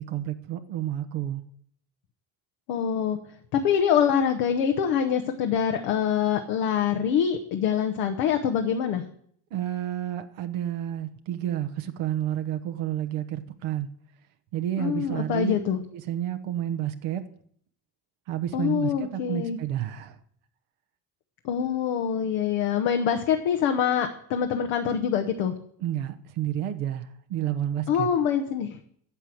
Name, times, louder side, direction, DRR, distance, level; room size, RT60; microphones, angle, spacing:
voice 1, 0.0-1.4 9.5-13.9 14.5-15.6 16.1-17.2 18.3-20.1 25.8-27.0 27.3-28.1, right 11 dB, 80° right, 1.2 m, -30 dB
voice 2, 2.7-3.2 3.5-9.0 14.8-15.8 18.5-19.6 21.4-25.5 27.9-28.8, left 8 dB, 85° left, 1.1 m, -25 dB
10.5 x 7.0 x 7.7 m
supercardioid pair, 60°, 50 cm